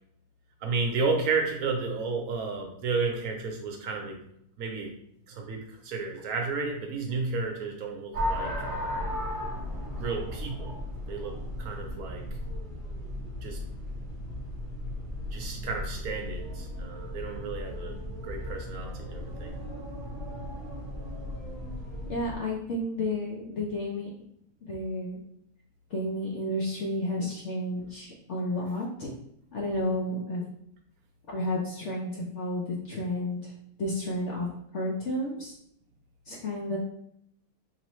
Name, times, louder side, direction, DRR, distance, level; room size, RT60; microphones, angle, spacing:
voice 1, 0.6-4.2 4.6-4.9 5.3-8.5 10.0-10.7 11.1-12.2 13.4-13.6 15.3-18.0 18.2-19.5, right 4 dB, 70° right, 2 dB, 1.1 m, -32 dB
sound 1, 8.1-22.4, left 1 dB, 15° right, 1.0 m, -36 dB
voice 2, 22.1-24.1 24.6-25.2 25.9-29.1 29.5-30.4 31.3-33.5 33.8-34.5 34.7-35.6 36.3-36.8, left 1 dB, 60° left, -2 dB, 0.8 m, -31 dB
4.1 x 3.0 x 3.0 m, 0.73 s
omnidirectional pair, 1.7 m